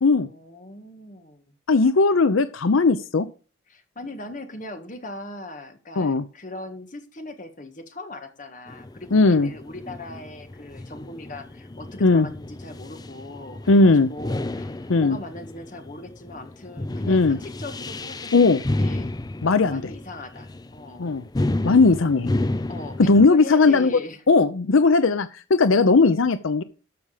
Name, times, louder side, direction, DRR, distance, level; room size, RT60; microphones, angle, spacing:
voice 1, 0.1-1.5 3.7-19.1 19.7-21.1 22.7-24.2 25.8-26.1, left 1 dB, 40° left, 7 dB, 1.6 m, -39 dB
voice 2, 1.7-3.3 6.0-6.2 9.1-9.5 12.0-12.3 13.7-14.1 14.9-15.2 17.1-17.4 18.3-18.6 19.4-19.8 21.0-21.2 21.6-22.3 23.0-24.0 24.3-26.6, left 3 dB, 85° left, 13 dB, 0.6 m, -18 dB
sound 1, 8.7-23.3, left 2 dB, 20° left, 0.5 m, -32 dB
13.0 x 6.2 x 5.0 m, 0.36 s
head